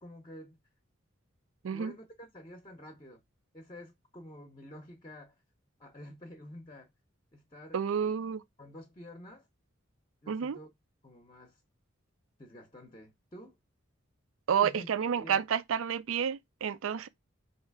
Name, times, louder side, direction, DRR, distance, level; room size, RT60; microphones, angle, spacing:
voice 1, 0.0-0.6 1.7-3.2 3.5-5.4 5.8-6.9 7.3-8.3 8.6-9.5 10.2-10.7 11.0-11.6 12.4-13.6 14.6-14.9 15.2-15.4, left 1 dB, 25° left, 0.7 m, -49 dB
voice 2, 7.7-8.4 10.3-10.6 14.5-17.1, right 7 dB, 80° right, 0.4 m, -30 dB
3.2 x 2.9 x 4.5 m
head